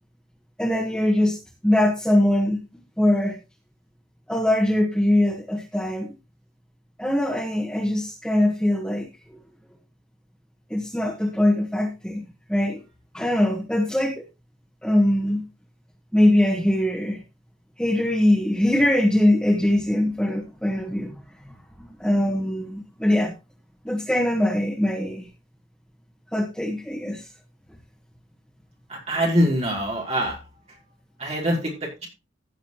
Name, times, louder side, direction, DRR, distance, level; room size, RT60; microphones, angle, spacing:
voice 1, 0.6-2.6 3.0-3.4 4.3-6.1 7.0-9.1 10.7-12.8 13.1-14.2 14.8-15.4 16.1-17.2 17.8-21.1 22.0-23.3 23.8-25.3 26.3-27.3, left 1 dB, 5° left, 1 dB, 1.4 m, -22 dB
voice 2, 28.9-30.4 31.2-32.1, equal, 35° right, -2 dB, 4.9 m, -24 dB
16.0 x 7.3 x 3.0 m, 0.26 s
head